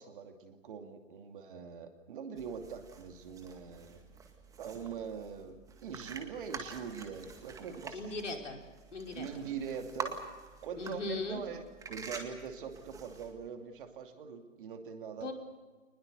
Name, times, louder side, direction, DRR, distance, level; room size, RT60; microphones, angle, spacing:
voice 1, 0.0-4.0 4.6-8.1 9.1-10.2 10.6-15.3, right 6 dB, 45° right, 5 dB, 2.7 m, -43 dB
sound 1, 2.4-13.5, right 5 dB, 10° right, 2.0 m, -47 dB
voice 2, 7.9-9.5 10.8-11.4 15.2-15.3, left 3 dB, 70° left, 2 dB, 5.2 m, -39 dB
28.0 x 20.5 x 6.8 m, 1.3 s
figure-of-eight pair, 135°, 38 cm